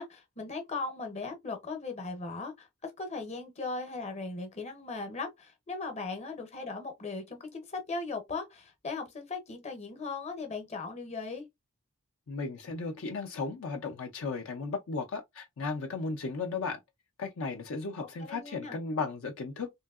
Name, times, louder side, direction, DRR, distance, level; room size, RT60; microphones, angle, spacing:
voice 1, 0.0-11.4 18.3-18.8, left 3 dB, 30° left, 0.8 m, -38 dB
voice 2, 12.3-16.8 17.2-19.7, left 4 dB, 60° left, 0.5 m, -35 dB
3.1 x 2.7 x 2.3 m
head